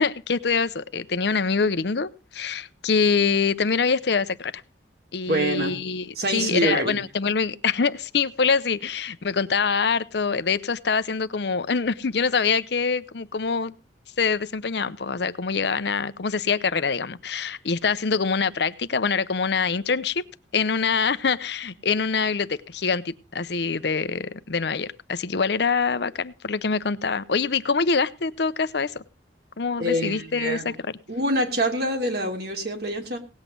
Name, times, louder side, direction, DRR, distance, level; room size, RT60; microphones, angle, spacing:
voice 1, 0.0-4.5 5.1-13.8 14.2-20.2 20.5-29.0 29.6-30.7, left 5 dB, 65° left, 14 dB, 0.7 m, -25 dB
voice 2, 5.3-5.8 6.1-7.0 29.8-30.7 31.1-33.2, right 1 dB, 60° right, 3 dB, 2.9 m, -25 dB
18.0 x 8.1 x 5.2 m, 0.32 s
head